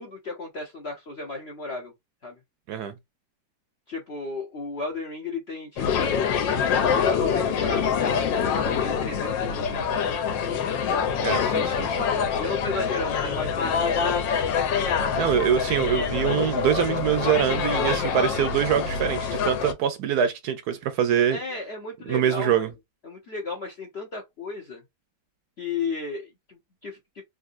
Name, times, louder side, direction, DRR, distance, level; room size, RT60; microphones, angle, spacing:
voice 1, 0.0-1.9 2.2-2.4 3.9-6.3 6.8-10.1 12.4-14.2 21.3-22.7 23.0-24.8 25.6-27.0, left 3 dB, 55° left, 0.7 m, -34 dB
sound 1, 5.8-19.7, left 6 dB, 90° left, 1.4 m, -25 dB
voice 2, 11.2-12.1 15.1-21.4 22.1-22.7, right 9 dB, 70° right, 1.0 m, -24 dB
3.5 x 2.6 x 2.5 m
omnidirectional pair, 1.9 m